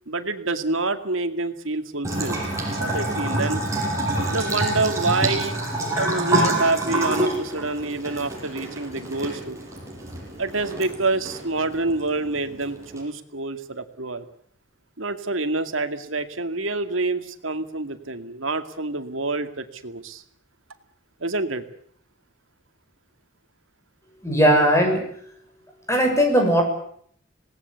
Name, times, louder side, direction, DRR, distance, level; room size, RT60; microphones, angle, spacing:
voice 1, 0.1-2.4 2.8-3.6 4.3-5.6 6.0-9.6 10.4-14.3 15.0-20.2 21.2-21.6, right 3 dB, 80° right, 8 dB, 2.3 m, -27 dB
Bathtub (filling or washing) / Trickle dribble, 2.0-13.0, right 1 dB, 15° right, 7.5 m, -27 dB
voice 2, 24.2-25.0 25.9-26.6, equal, 15° left, 3 dB, 6.8 m, -18 dB
26.5 x 19.0 x 8.3 m, 0.62 s
head